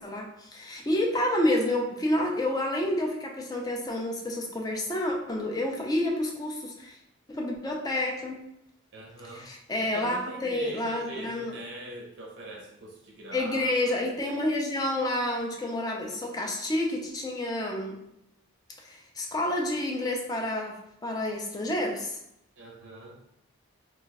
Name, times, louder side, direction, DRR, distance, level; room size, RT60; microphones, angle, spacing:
voice 1, 0.0-7.0 7.3-8.3 9.3-11.5 13.3-18.0 18.8-22.2, left 1 dB, 20° left, 0 dB, 0.4 m, -29 dB
voice 2, 8.9-9.5 9.9-14.0 22.6-23.1, right 1 dB, 60° right, -1 dB, 0.5 m, -41 dB
2.3 x 2.2 x 4.0 m, 0.80 s
head